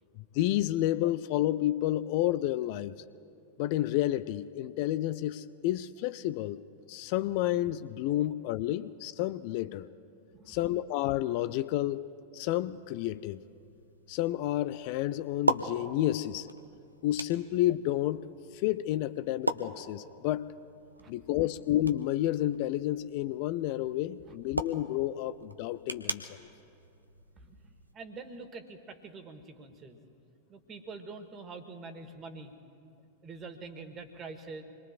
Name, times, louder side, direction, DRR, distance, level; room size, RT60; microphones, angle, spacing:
voice 1, 0.3-2.9 3.6-6.6 6.9-9.9 10.5-12.0 12.3-13.4 14.1-16.5 17.0-18.2 18.5-20.5 21.1-26.5, left 14 dB, 45° left, 14 dB, 0.3 m, -30 dB
sound 1, 12.7-27.9, right 2 dB, 85° right, 0.6 m, -40 dB
voice 2, 27.3-30.0 30.5-32.5 33.2-34.6, right 4 dB, 25° right, 8 dB, 1.4 m, -45 dB
27.0 x 21.5 x 2.5 m, 2.5 s
figure-of-eight pair, 90°, 0 cm